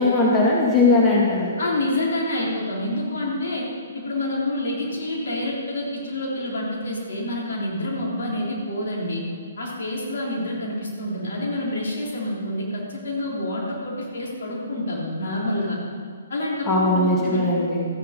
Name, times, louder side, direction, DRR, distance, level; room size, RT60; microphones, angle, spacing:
voice 1, 0.0-1.5 16.7-17.8, left 2 dB, 15° left, -4 dB, 2.1 m, -19 dB
voice 2, 1.6-3.7 3.9-9.2 9.6-15.8 16.3-17.5, left 1 dB, 60° left, -4 dB, 3.8 m, -27 dB
14.0 x 9.9 x 5.3 m, 2.2 s
figure-of-eight pair, 130°, 0 cm